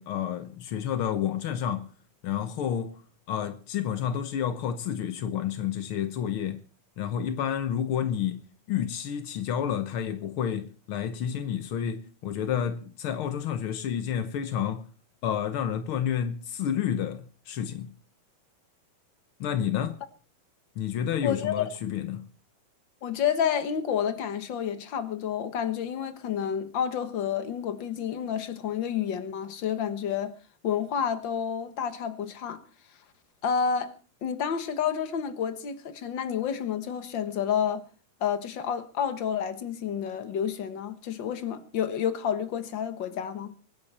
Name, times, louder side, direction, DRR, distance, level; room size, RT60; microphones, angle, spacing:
voice 1, 0.0-1.9 2.2-3.0 3.3-6.6 7.0-8.4 8.7-14.9 15.2-17.9 19.4-20.0 20.7-22.3, left 9 dB, 90° left, 1.1 m, -30 dB
voice 2, 21.2-21.7 23.0-30.3 30.6-32.6 33.4-33.9 34.2-37.8 38.2-43.5, left 8 dB, 55° left, 1.4 m, -29 dB
24.0 x 10.5 x 4.3 m
omnidirectional pair, 3.9 m